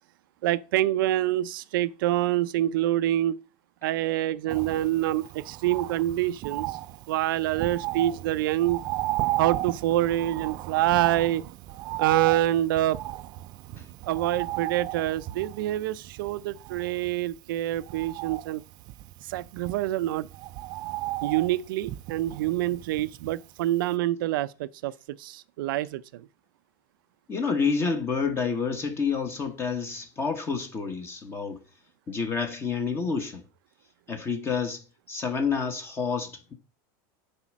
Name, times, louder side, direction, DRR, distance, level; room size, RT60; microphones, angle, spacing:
voice 1, 0.4-3.4 3.8-6.8 7.1-8.8 9.4-11.4 12.0-13.0 14.1-18.6 19.2-20.3 21.2-26.3, right 14 dB, 90° right, 0.5 m, -26 dB
Bird, 4.5-23.6 23.9-24.0, right 17 dB, 40° right, 0.4 m, -35 dB
voice 2, 27.3-31.6 32.1-33.4 34.1-34.8 35.1-36.5, left 5 dB, 20° left, 1.2 m, -29 dB
9.8 x 4.3 x 6.1 m
supercardioid pair, 160°, 11 cm